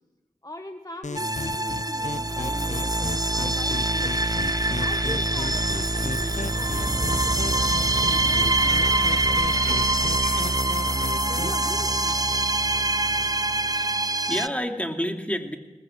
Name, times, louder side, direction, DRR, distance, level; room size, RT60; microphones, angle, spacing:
voice 1, 0.4-4.2 4.8-7.8 8.0-12.2, left 1 dB, 25° left, 6 dB, 1.3 m, -41 dB
sound 1, 1.0-11.7, left 4 dB, 60° left, 0.7 m, -36 dB
sound 2, 1.1-14.5, right 2 dB, 25° right, 0.7 m, -24 dB
sound 3, 4.1-10.4, right 2 dB, 70° right, 5.3 m, -41 dB
voice 2, 13.7-15.6, equal, 10° left, 3 dB, 2.7 m, -29 dB
22.0 x 19.5 x 7.9 m, 1.2 s
wide cardioid pair, 45°, 14 cm